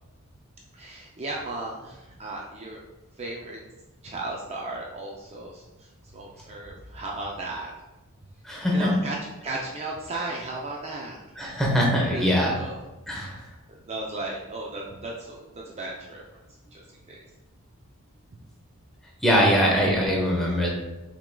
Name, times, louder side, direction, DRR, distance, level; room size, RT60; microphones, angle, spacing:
voice 1, 0.7-2.8 3.2-3.6 4.0-7.7 8.7-9.2 9.4-11.2 11.5-11.6 12.1-12.8 13.1-13.2 13.7-16.2 16.7-17.2, right 2 dB, 30° right, -2 dB, 0.4 m, -35 dB
voice 2, 8.4-8.9 11.4-12.5 13.1-13.4 19.2-20.7, equal, ahead, -3 dB, 0.9 m, -22 dB
6.0 x 3.6 x 2.2 m, 1.1 s
head